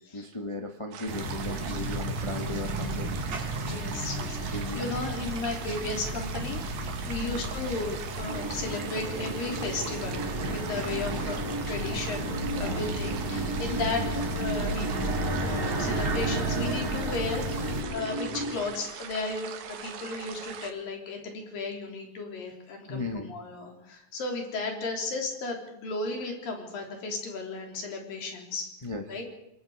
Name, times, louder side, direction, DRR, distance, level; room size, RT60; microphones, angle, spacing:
voice 1, 0.1-3.5 4.5-4.9 7.1-7.5 12.5-12.8 22.9-23.3 28.8-29.0, left 2 dB, 30° left, 3 dB, 0.6 m, -36 dB
sound 1, 0.9-20.7, right 8 dB, 85° right, 3.3 m, -41 dB
sound 2, 1.1-17.8, right 2 dB, 55° right, 5.8 m, -33 dB
voice 2, 3.7-28.7 29.1-29.2, left 3 dB, 85° left, 2 dB, 5.2 m, -35 dB
sound 3, 8.3-18.6, equal, 5° right, 4.3 m, -36 dB
27.5 x 21.5 x 4.9 m, 0.84 s
omnidirectional pair, 3.9 m